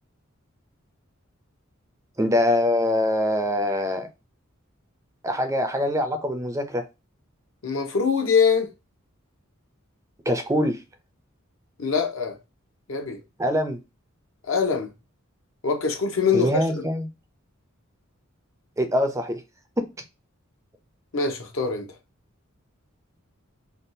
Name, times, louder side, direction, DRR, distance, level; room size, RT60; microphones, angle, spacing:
voice 1, 2.2-4.1 5.2-6.8 10.3-10.8 13.4-13.8 16.3-17.1 18.8-19.4 19.8-19.9, left 1 dB, 15° right, 0.4 m, -23 dB
voice 2, 7.6-8.7 11.8-12.4 12.9-13.2 14.5-14.9 15.6-16.9 21.1-21.9, left 5 dB, 70° left, 0.9 m, -23 dB
3.4 x 2.3 x 2.6 m
head